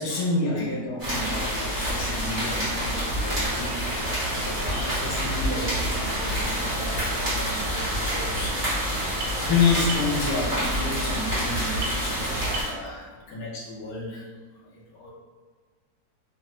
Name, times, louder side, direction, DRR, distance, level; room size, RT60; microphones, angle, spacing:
voice 1, 0.0-3.8 4.3-14.3 14.7-15.1, left 4 dB, 75° left, -4 dB, 1.2 m, -30 dB
sound 1, 1.0-12.6, equal, 30° right, 1.2 m, -27 dB
sound 2, 6.4-12.7, right 2 dB, 75° right, 1.0 m, -36 dB
2.9 x 2.2 x 2.9 m, 1.5 s
omnidirectional pair, 1.6 m